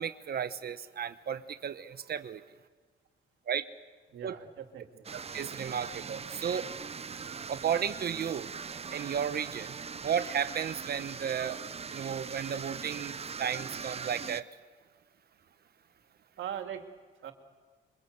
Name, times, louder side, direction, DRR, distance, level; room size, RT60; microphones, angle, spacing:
voice 1, 0.0-2.4 3.5-3.7 4.2-4.3 5.1-6.7 7.5-8.5 8.9-11.6 11.9-14.5, right 8 dB, 50° right, 1.0 m, -34 dB
voice 2, 4.1-5.1 16.4-16.9 17.2-17.3, right 9 dB, 75° right, 2.4 m, -40 dB
sound 1, 5.0-14.4, right 6 dB, 30° right, 0.8 m, -41 dB
25.5 x 23.5 x 8.0 m
cardioid pair, 90°, 20 cm